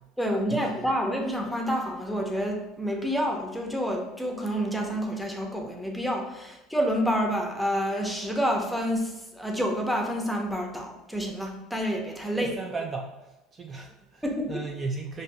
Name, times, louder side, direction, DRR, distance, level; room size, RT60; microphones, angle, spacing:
voice 1, 0.2-12.5 14.2-14.7, equal, ahead, 1 dB, 0.8 m, -28 dB
voice 2, 12.4-13.1 13.5-14.2 14.5-15.2, right 4 dB, 30° right, 2 dB, 0.4 m, -35 dB
5.2 x 2.6 x 2.7 m, 1.0 s
supercardioid pair, 90°, 0 cm